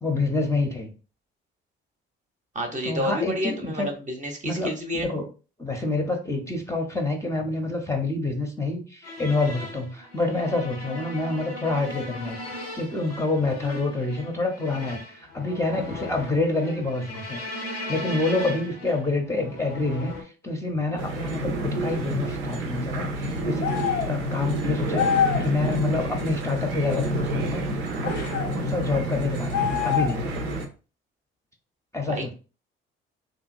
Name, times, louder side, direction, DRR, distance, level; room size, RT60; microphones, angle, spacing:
voice 1, 0.0-0.9 2.8-3.9 4.5-4.7 4.9-5.2 5.6-17.4 17.9-25.1 25.4-27.7 28.0-28.3 28.5-30.3 31.9-32.3, left 2 dB, 10° left, 1 dB, 0.7 m, -27 dB
voice 2, 2.5-5.1 32.1-32.3, equal, 25° right, 3 dB, 0.8 m, -29 dB
sound 1, 9.0-20.2, left 1 dB, 85° left, 0.9 m, -38 dB
sound 2, 21.0-30.7, right 1 dB, 85° right, 0.6 m, -29 dB
sound 3, 23.6-24.1 24.9-25.5 28.0-28.5 29.5-30.3, left 7 dB, 55° left, 0.5 m, -25 dB
2.8 x 2.5 x 2.5 m, 0.35 s
figure-of-eight pair, 50°, 29 cm